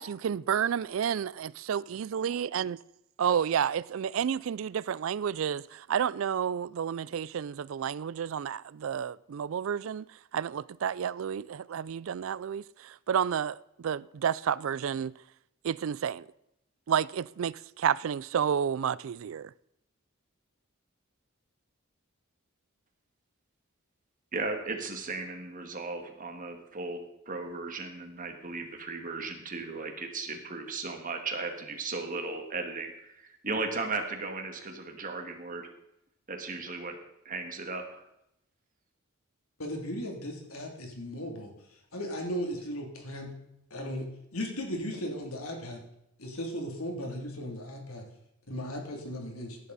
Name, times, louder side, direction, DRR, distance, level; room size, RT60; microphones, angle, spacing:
voice 1, 0.0-2.8 3.2-10.0 10.3-12.6 13.1-15.1 15.6-16.2 16.9-19.5, right 8 dB, 65° right, 0.3 m, -30 dB
voice 2, 24.3-27.0 27.3-35.7 36.3-37.0 37.3-38.0, right 3 dB, 40° right, 1.9 m, -36 dB
voice 3, 39.6-41.5 41.9-43.3 43.7-45.8 46.2-48.0 48.5-49.6, equal, 85° left, 3.0 m, -36 dB
16.0 x 11.0 x 4.1 m
head